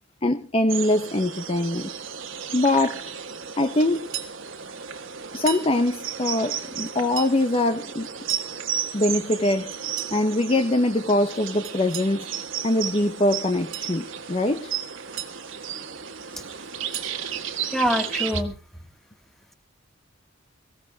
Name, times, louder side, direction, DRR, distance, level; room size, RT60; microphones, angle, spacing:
voice 1, 0.2-1.9 2.5-3.1 3.6-4.1 5.3-8.1 8.9-9.7 10.1-12.3 12.6-14.7, left 1 dB, 30° left, 0.8 m, -23 dB
sound 1, 0.7-18.4, right 8 dB, 65° right, 1.6 m, -34 dB
sound 2, 3.9-4.4 5.3-5.7 6.9-7.4 8.0-8.5 9.7-10.2 11.6-12.2 13.5-13.9 14.8-15.3 16.6-17.2, right 11 dB, 85° right, 2.5 m, -37 dB
voice 2, 17.7-18.5, equal, ahead, 1.9 m, -24 dB
24.0 x 16.0 x 2.4 m
head